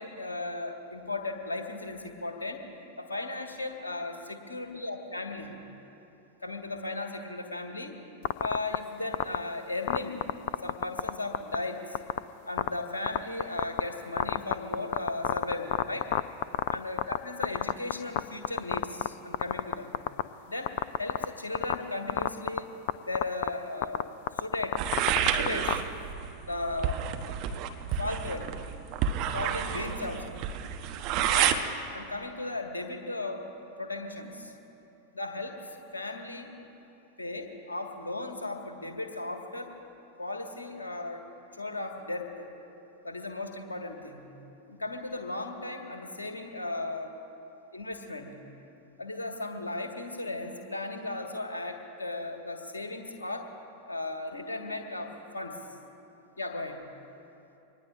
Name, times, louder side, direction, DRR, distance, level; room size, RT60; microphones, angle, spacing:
voice 1, 0.0-2.7 3.0-5.5 6.4-8.0 8.4-10.2 10.6-12.0 12.5-16.1 16.7-19.9 20.5-22.7 23.0-24.8 25.3-25.8 26.5-27.0 28.0-28.5 29.3-30.4 31.3-31.6 31.9-33.5 33.8-34.5 35.1-35.6 35.9-36.6 37.2-39.8 40.2-41.3 41.6-42.5 43.0-44.2 44.7-47.1 47.7-48.3 49.0-53.5 53.9-55.6 56.4-56.8, left 2 dB, 75° left, 4 dB, 1.6 m, -36 dB
sound 1, 8.2-8.8 9.1-9.4 9.9-11.1 11.3-11.6 11.9-12.2 12.6-12.7 13.1-13.8 14.2-17.2 17.4-18.2 18.4-19.1 19.3-20.2 20.7-21.2 21.5-21.7 22.1-22.6 22.9-23.0 23.2-23.5 23.8-25.7, left 15 dB, 50° left, 0.4 m, -26 dB
sound 2, 24.8-31.6, right 9 dB, 40° right, 1.0 m, -29 dB
24.5 x 19.5 x 2.5 m, 2.9 s
figure-of-eight pair, 90°, 0 cm